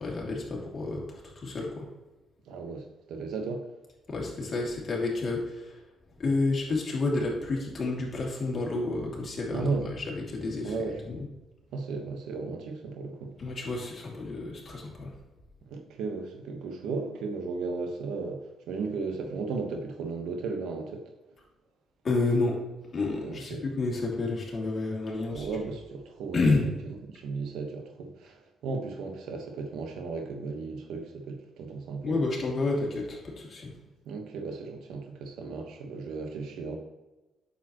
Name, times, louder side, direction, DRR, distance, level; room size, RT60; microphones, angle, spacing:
voice 1, 0.0-1.9 4.1-5.8 6.2-10.7 11.1-11.2 13.4-15.1 22.0-22.6 22.9-25.5 26.3-26.7 32.0-33.7, left 3 dB, 40° left, -2 dB, 2.6 m, -30 dB
voice 2, 2.5-3.7 9.5-9.9 10.6-11.0 11.7-13.3 15.7-21.1 23.2-23.6 25.3-26.4 27.1-32.3 34.0-36.8, right 4 dB, 85° right, 4 dB, 1.3 m, -35 dB
8.9 x 7.0 x 3.1 m, 1.1 s
cardioid pair, 90°, 0 cm